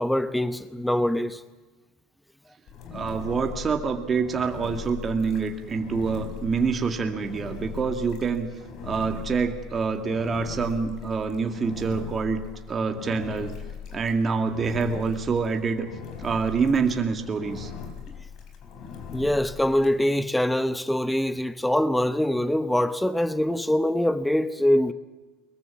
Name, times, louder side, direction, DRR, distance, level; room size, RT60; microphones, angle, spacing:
voice 1, 0.0-1.4 19.1-24.9, left 1 dB, 5° left, 0.9 m, -24 dB
Engine, 2.7-20.0, left 7 dB, 55° left, 4.5 m, -40 dB
voice 2, 2.9-8.5 8.8-13.5 13.9-15.9 16.2-17.7, right 5 dB, 30° right, 2.0 m, -26 dB
22.0 x 21.0 x 7.3 m
hypercardioid pair, 85°, 0 cm